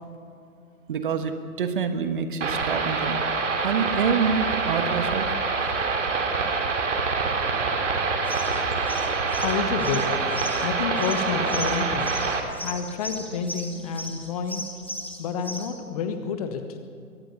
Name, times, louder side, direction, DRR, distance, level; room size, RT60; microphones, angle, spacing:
voice 1, 0.9-3.2 3.6-5.3, right 6 dB, 35° right, 9 dB, 1.3 m, -26 dB
sound 1, 2.4-12.4, right 4 dB, 55° right, 2.9 m, -26 dB
Bowed string instrument, 6.6-11.6, left 2 dB, 50° left, 5.2 m, -46 dB
sound 2, 8.3-15.7, equal, 10° left, 0.4 m, -37 dB
voice 2, 9.4-10.1 10.6-12.2 12.6-14.6 15.2-16.8, left 6 dB, 25° left, 8 dB, 1.4 m, -29 dB
22.5 x 18.5 x 6.8 m, 2.3 s
figure-of-eight pair, 130°, 44 cm